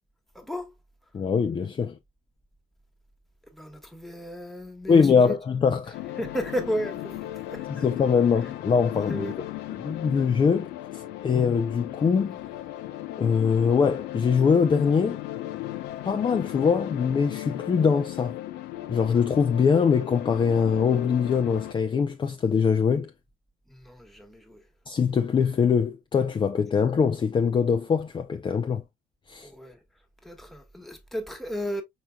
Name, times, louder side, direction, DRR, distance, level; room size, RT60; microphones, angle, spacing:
voice 1, 0.3-0.7 3.5-5.4 6.2-7.8 9.1-9.4 23.7-24.6 29.4-29.8 30.2-31.8, equal, ahead, 1.4 m, -34 dB
voice 2, 1.1-2.0 4.9-6.0 7.7-9.3 9.7-10.7 11.2-12.4 13.2-15.2 16.1-18.4 18.9-23.1 24.9-28.8 29.3-29.5, left 6 dB, 30° left, 0.5 m, -23 dB
sound 1, 5.9-21.7, left 14 dB, 90° left, 0.7 m, -36 dB
5.0 x 4.4 x 2.3 m
cardioid pair, 110°, 17 cm